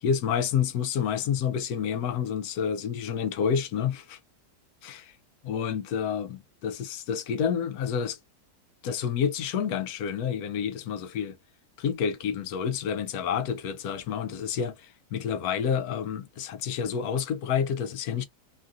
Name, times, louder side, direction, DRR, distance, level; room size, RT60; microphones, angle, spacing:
voice 1, 0.0-4.2 4.8-5.1 5.4-8.2 8.8-11.4 11.8-18.2, left 7 dB, 70° left, 0.9 m, -29 dB
3.1 x 2.4 x 2.4 m
omnidirectional pair, 1.9 m